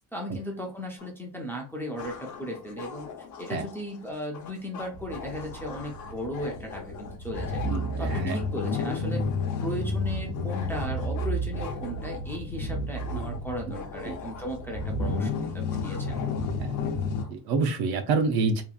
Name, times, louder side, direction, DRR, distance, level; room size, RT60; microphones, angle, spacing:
voice 1, 0.1-3.1 3.4-7.6 8.0-9.2 9.6-16.2, equal, 5° left, -1 dB, 0.4 m, -36 dB
sound 1, 1.0-1.1 2.0-17.3, left 6 dB, 45° left, 0.7 m, -43 dB
sound 2, 4.9-17.2, left 2 dB, 85° left, 0.8 m, -31 dB
voice 2, 7.7-8.4 13.7-13.8 14.0-14.2 16.6-16.8 17.3-18.6, right 4 dB, 65° right, 6 dB, 0.7 m, -27 dB
2.9 x 2.4 x 2.3 m, 0.36 s
cardioid pair, 155°, 40 cm